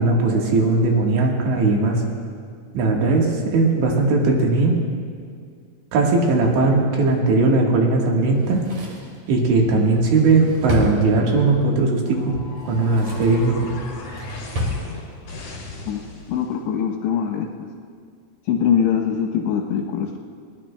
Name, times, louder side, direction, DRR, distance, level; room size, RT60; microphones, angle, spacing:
voice 1, 0.0-2.0 2.7-4.8 5.9-8.6 9.3-13.7, right 3 dB, 70° right, -1 dB, 3.7 m, -18 dB
Drawer open or close, 8.3-11.6 12.5-13.4 13.8-14.8 15.1-15.2, left 1 dB, 45° right, 3.0 m, -30 dB
sound 1, 12.0-16.6, left 3 dB, 45° left, 2.9 m, -37 dB
voice 2, 16.3-17.7 18.5-20.2, left 8 dB, 75° left, 0 dB, 2.9 m, -22 dB
21.5 x 18.5 x 2.2 m, 2.2 s
omnidirectional pair, 5.5 m